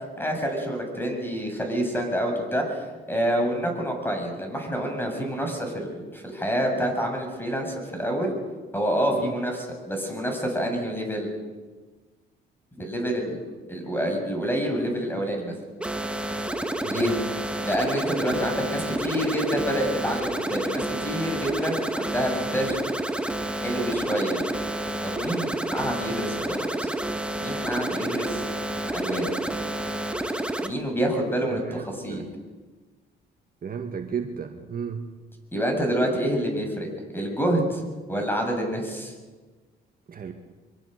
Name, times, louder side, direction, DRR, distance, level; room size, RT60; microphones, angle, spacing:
voice 1, 0.2-2.8 3.1-8.4 8.7-11.3 12.8-13.4 13.7-15.5 16.9-17.1 17.6-22.8 23.6-24.4 25.0-26.9 27.4-28.4 28.9-29.3 30.6-32.2 35.5-36.9 37.1-37.8 38.1-39.1, equal, 10° left, 2 dB, 7.4 m, -27 dB
sound 1, 15.8-30.7, right 1 dB, 5° right, 2.0 m, -29 dB
voice 2, 16.8-17.1 31.5-32.3 33.6-35.1 40.1-40.3, right 6 dB, 45° right, 4 dB, 2.0 m, -34 dB
24.0 x 22.5 x 6.8 m, 1.3 s
cardioid pair, 90°, 20 cm